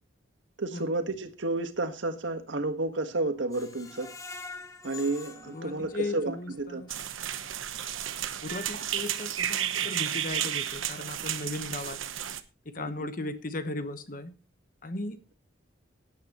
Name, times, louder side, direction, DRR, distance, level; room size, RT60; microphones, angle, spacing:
voice 1, 0.6-4.1 4.8-6.9 12.8-13.1, right 2 dB, 70° right, 8 dB, 1.5 m, -31 dB
Screech, 3.5-6.5 6.9-7.0 7.4-7.5, left 3 dB, 15° left, 1.2 m, -45 dB
voice 2, 5.5-6.9 8.4-12.0 12.6-14.4 14.8-15.3, left 2 dB, 45° left, 11 dB, 1.1 m, -36 dB
sound 1, 6.9-12.4, right 10 dB, 90° right, 1.0 m, -32 dB
17.0 x 9.8 x 3.0 m, 0.29 s
head